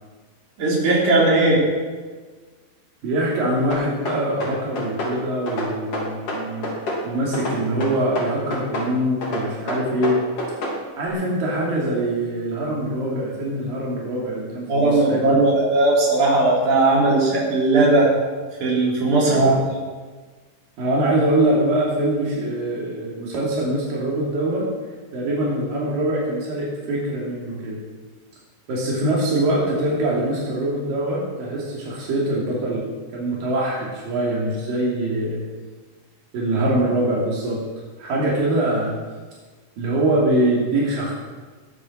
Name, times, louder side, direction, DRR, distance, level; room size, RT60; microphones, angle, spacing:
voice 1, 0.6-1.6 14.7-18.1 18.6-19.4, right 2 dB, 60° right, -4 dB, 5.2 m, -18 dB
voice 2, 3.0-6.7 7.0-10.2 11.0-15.4 19.3-19.6 20.8-24.7 25.1-27.8 28.7-35.4 36.3-37.6 38.0-39.0 39.8-41.1, right 1 dB, 85° right, -5 dB, 4.4 m, -23 dB
sound 1, 3.7-5.2 5.5-7.0 7.3-8.9 9.2-10.8, left 1 dB, 45° left, 3.8 m, -27 dB
20.5 x 9.5 x 6.3 m, 1.4 s
omnidirectional pair, 3.9 m